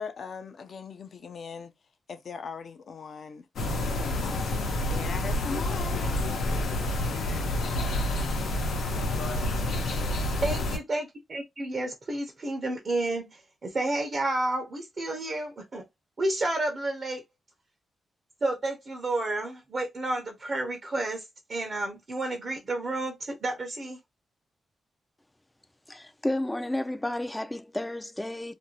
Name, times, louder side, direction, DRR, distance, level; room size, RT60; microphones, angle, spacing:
voice 1, 0.0-1.7 2.1-6.2, left 5 dB, 60° left, 0.6 m, -40 dB
sound 1, 3.6-10.8, left 1 dB, 90° left, 0.8 m, -28 dB
voice 2, 10.4-15.9 16.2-17.2 18.4-24.0, right 2 dB, 45° right, 0.7 m, -31 dB
voice 3, 25.9-28.5, left 1 dB, 10° left, 0.4 m, -31 dB
2.6 x 2.2 x 2.9 m
cardioid pair, 105°, 0 cm